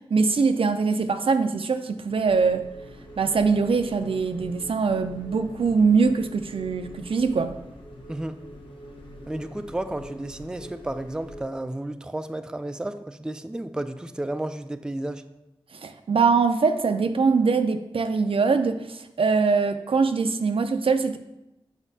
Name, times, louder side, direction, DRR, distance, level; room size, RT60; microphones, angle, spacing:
voice 1, 0.1-2.6 3.2-7.6 15.7-21.2, right 4 dB, 70° right, 8 dB, 0.5 m, -22 dB
sound 1, 2.1-11.4, equal, 70° left, 1.1 m, -44 dB
voice 2, 9.3-15.2, right 1 dB, 10° right, 9 dB, 0.3 m, -32 dB
7.1 x 5.9 x 2.8 m, 0.91 s
wide cardioid pair, 75°, 10 cm